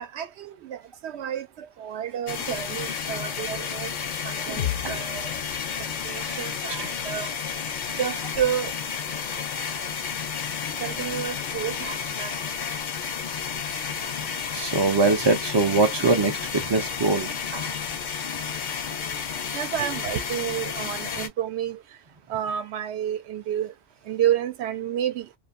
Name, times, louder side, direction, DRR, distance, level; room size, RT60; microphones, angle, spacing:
voice 1, 0.0-3.9 4.2-5.3 6.0-7.3 8.0-8.7 10.8-12.3 19.5-21.8 22.3-23.7 24.1-25.3, right 10 dB, 80° right, 0.8 m, -30 dB
sound 1, 2.3-21.3, left 6 dB, 55° left, 0.6 m, -31 dB
voice 2, 4.5-5.0 6.2-6.4 6.8-6.9 14.5-17.7, right 3 dB, 45° right, 0.3 m, -23 dB
sound 2, 4.6-8.5, left 12 dB, 80° left, 0.9 m, -37 dB
2.5 x 2.4 x 2.4 m
omnidirectional pair, 1.1 m